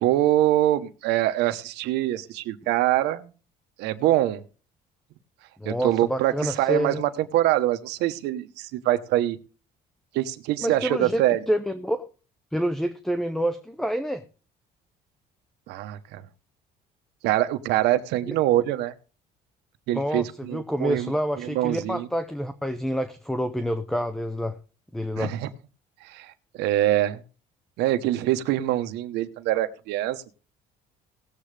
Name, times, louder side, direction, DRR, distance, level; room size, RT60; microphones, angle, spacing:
voice 1, 0.0-3.3 3.8-4.4 5.6-9.4 10.1-11.4 15.7-16.2 17.2-18.9 19.9-22.1 25.2-25.5 26.0-27.2 27.8-30.3, right 14 dB, 85° right, 10 dB, 1.0 m, -24 dB
voice 2, 5.6-7.0 10.6-12.0 12.5-14.2 18.3-18.4 19.9-20.2 20.5-24.6 24.9-25.3, equal, ahead, 10 dB, 0.6 m, -27 dB
18.5 x 7.5 x 3.3 m, 0.37 s
cardioid pair, 140°, 17 cm